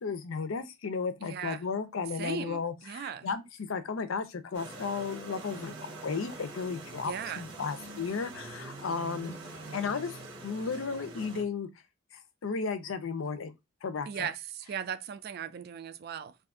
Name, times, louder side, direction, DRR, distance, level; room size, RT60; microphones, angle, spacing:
voice 1, 0.0-9.4 9.7-11.7 12.1-13.5 13.8-14.3, left 5 dB, 85° left, 0.5 m, -34 dB
voice 2, 1.3-1.6 2.2-3.3 7.0-7.5 14.1-16.4, right 8 dB, 50° right, 0.3 m, -37 dB
sound 1, 4.5-11.4, right 2 dB, 85° right, 1.1 m, -44 dB
2.6 x 2.4 x 3.6 m
head